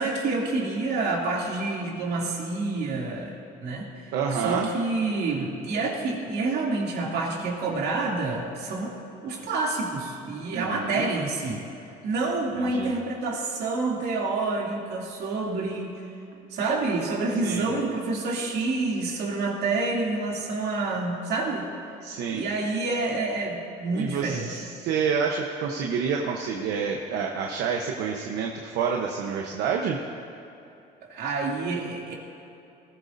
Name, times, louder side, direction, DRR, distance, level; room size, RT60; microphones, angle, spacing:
voice 1, 0.0-9.0 9.2-11.6 12.0-16.0 16.5-21.7 22.3-24.5 31.1-32.1, right 3 dB, 75° right, -3 dB, 2.8 m, -28 dB
voice 2, 4.1-4.7 10.5-11.1 12.6-12.9 17.4-17.7 22.0-22.4 23.9-30.0, right 6 dB, 90° right, 1 dB, 1.0 m, -28 dB
19.0 x 15.5 x 2.7 m, 2.9 s
cardioid pair, 110°, 17 cm